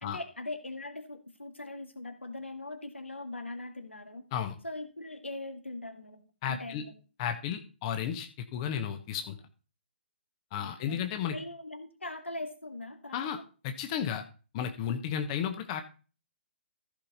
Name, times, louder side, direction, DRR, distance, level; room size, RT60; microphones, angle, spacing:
voice 1, 0.0-4.2 4.6-6.9 10.6-13.3, left 2 dB, 85° left, 6 dB, 2.0 m, -41 dB
voice 2, 6.4-6.8 7.2-9.4 10.5-11.4 13.1-13.4 13.6-14.2 14.5-15.8, left 8 dB, 30° left, 7 dB, 1.0 m, -33 dB
14.5 x 5.7 x 4.1 m, 0.36 s
figure-of-eight pair, 130°, 6 cm